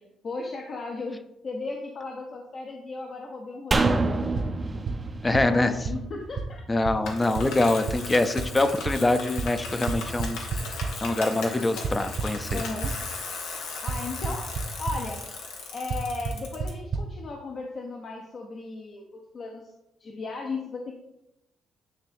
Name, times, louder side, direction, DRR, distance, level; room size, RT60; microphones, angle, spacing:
voice 1, 0.0-4.6 5.3-6.6 12.5-12.9 13.8-14.5 14.8-15.2 15.7-19.7 20.0-20.9, left 3 dB, 50° left, 1 dB, 0.9 m, -36 dB
sound 1, 3.7-7.0 7.3-7.4, right 2 dB, 25° right, 0.6 m, -27 dB
sound 2, 3.9-4.0 4.4-4.5 4.9-5.0 5.3-5.4 5.9-6.0 6.4-6.5 6.9-7.0 7.4-7.5 7.9-8.0 8.4-8.5 8.9-9.0 9.4-9.5 9.9-10.9 11.8-12.9 13.9-14.0 14.2-14.6 14.9-15.0 15.9-16.0 16.3-16.4 16.6-16.7 16.9-17.0, right 6 dB, 65° right, 1.1 m, -28 dB
voice 2, 5.2-5.7 6.7-10.4 11.0-12.6, left 2 dB, 20° left, 10 dB, 0.6 m, -24 dB
Bicycle, 7.0-16.7, left 4 dB, 90° left, 1.3 m, -37 dB
9.4 x 3.5 x 3.5 m, 0.86 s
cardioid pair, 90°, 0 cm